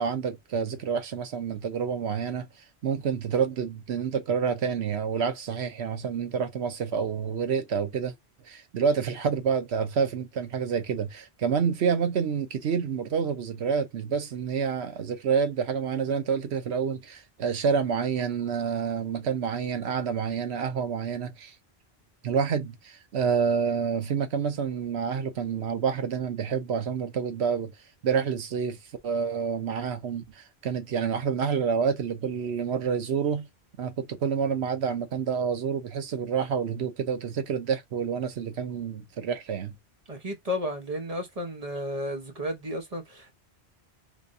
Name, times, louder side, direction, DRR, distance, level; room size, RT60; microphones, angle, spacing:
voice 1, 0.0-2.5 2.8-8.1 8.5-21.5 22.2-27.7 28.0-28.8 29.0-33.5 33.8-39.8, right 6 dB, 80° right, 1.1 m, -28 dB
voice 2, 40.1-43.3, left 1 dB, 35° right, 1.2 m, -33 dB
3.4 x 3.3 x 2.6 m
omnidirectional pair, 1.1 m